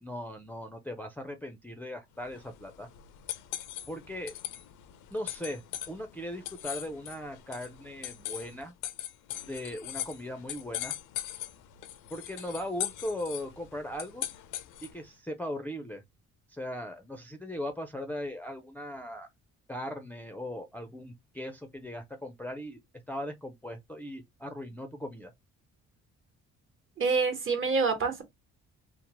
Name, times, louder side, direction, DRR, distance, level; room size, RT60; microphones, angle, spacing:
voice 1, 0.0-2.9 3.9-4.3 5.1-5.6 5.9-8.7 9.5-10.9 12.1-14.2 14.8-16.0 16.5-19.3 19.7-22.8 23.1-25.3, left 1 dB, 5° left, 0.4 m, -38 dB
sound 1, 2.2-15.1, left 12 dB, 85° left, 0.5 m, -41 dB
voice 2, 27.0-28.2, right 4 dB, 40° right, 1.1 m, -26 dB
2.8 x 2.0 x 2.9 m
cardioid pair, 90°, 30 cm